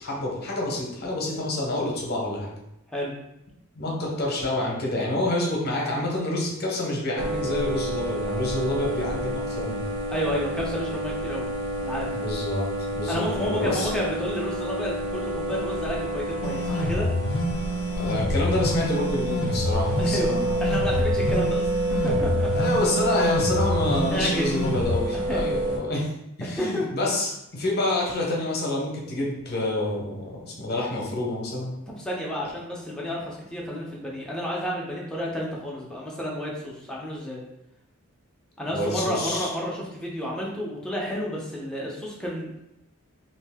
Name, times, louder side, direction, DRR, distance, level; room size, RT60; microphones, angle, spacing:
voice 1, 0.0-2.5 3.8-9.9 12.1-12.7 12.9-13.9 17.9-20.6 22.5-26.1 26.4-31.7 38.7-39.5, left 1 dB, 50° left, -2 dB, 0.8 m, -27 dB
sound 1, 7.2-25.8, right 1 dB, 70° right, 0.5 m, -29 dB
voice 2, 10.1-11.5 11.8-12.1 13.0-17.1 20.0-20.3 20.6-21.7 22.0-22.5 24.1-24.6 25.1-25.4 26.4-26.8 31.9-37.4 38.6-42.5, equal, 5° left, -4 dB, 0.6 m, -31 dB
sound 2, 16.4-25.0, left 1 dB, 75° left, 0.5 m, -27 dB
2.7 x 2.5 x 3.4 m, 0.83 s
head